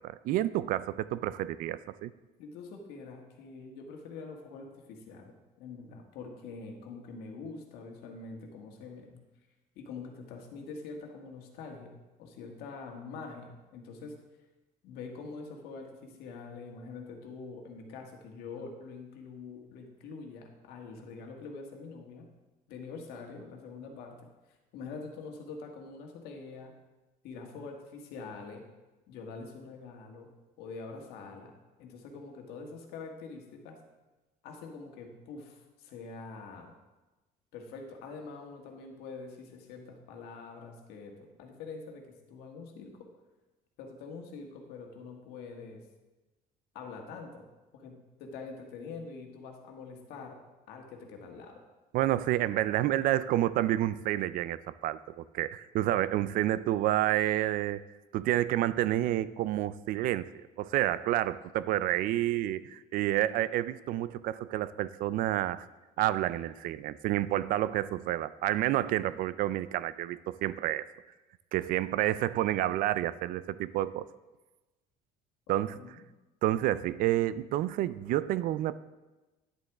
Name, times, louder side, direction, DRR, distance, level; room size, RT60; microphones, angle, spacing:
voice 1, 0.0-2.1 51.9-57.8 58.1-60.3 60.6-65.7 66.0-70.9 71.5-74.1 75.5-75.8 76.4-78.8, right 14 dB, 60° right, 16 dB, 0.4 m, -29 dB
voice 2, 2.4-9.2 9.7-14.2 14.8-22.3 22.7-24.2 24.5-26.7 27.2-28.7 29.1-31.5 31.8-33.8 34.4-36.7 37.5-43.1 43.8-45.8 46.7-50.4 50.7-51.6 75.5-76.0, left 4 dB, 75° left, 2 dB, 1.6 m, -45 dB
10.0 x 7.9 x 3.5 m, 1.1 s
cardioid pair, 135°, 17 cm